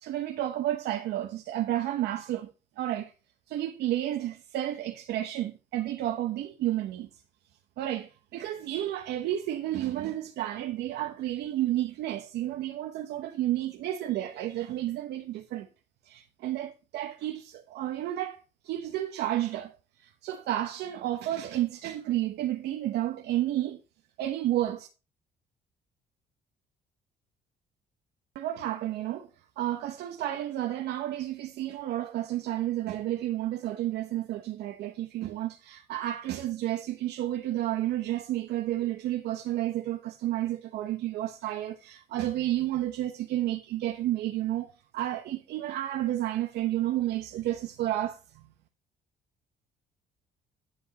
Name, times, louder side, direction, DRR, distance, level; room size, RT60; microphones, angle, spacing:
voice 1, 0.0-3.1 3.5-7.1 7.8-15.7 16.0-23.8 24.2-24.9 28.3-29.3 29.6-48.2, right 13 dB, 75° right, 1.1 m, -31 dB
11.0 x 5.3 x 5.4 m
cardioid pair, 110°, 17 cm